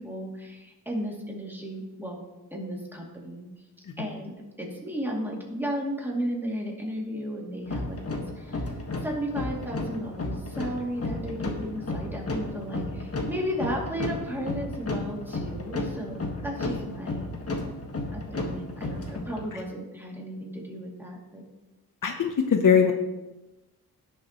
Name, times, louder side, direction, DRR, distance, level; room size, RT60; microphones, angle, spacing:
voice 1, 0.0-2.2 2.5-3.5 4.0-8.7 9.0-17.3 18.1-21.4, equal, 5° right, -2 dB, 2.6 m, -34 dB
sound 1, 7.7-19.5, left 2 dB, 40° left, 1.7 m, -33 dB
voice 2, 22.0-22.9, left 7 dB, 55° left, 5 dB, 0.9 m, -21 dB
17.0 x 7.2 x 3.1 m, 1.0 s
wide cardioid pair, 110°, 38 cm